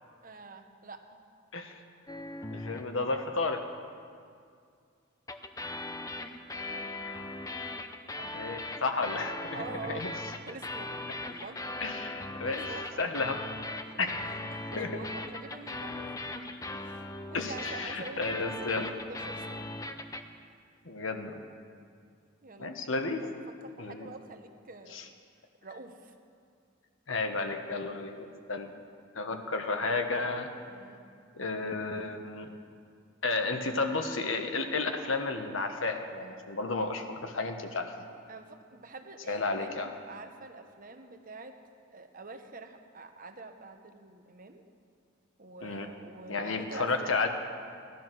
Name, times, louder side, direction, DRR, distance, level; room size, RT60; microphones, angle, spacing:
voice 1, 0.2-1.0 6.7-6.9 8.2-8.4 9.5-10.0 10.5-10.9 11.2-11.6 12.4-13.1 13.8-14.0 14.5-16.2 16.7-17.0 17.3-19.7 22.4-22.7 23.6-25.1 25.6-26.1 30.6-31.0 38.3-41.6 41.9-44.6 45.4-47.2, right 3 dB, 40° right, 6 dB, 1.0 m, -46 dB
sound 1, 2.1-3.0 5.3-20.2, left 2 dB, 15° left, 0.6 m, -39 dB
voice 2, 2.5-3.6 8.3-10.1 11.8-13.4 14.0-14.2 14.8-15.0 17.3-18.9 20.8-21.4 22.6-23.2 23.8-24.1 24.9-25.0 27.1-28.7 29.1-30.5 31.3-32.5 33.2-37.9 39.3-39.9 45.6-45.9 46.3-47.3, left 3 dB, 75° left, 5 dB, 1.3 m, -32 dB
17.0 x 12.0 x 6.1 m, 2.3 s
head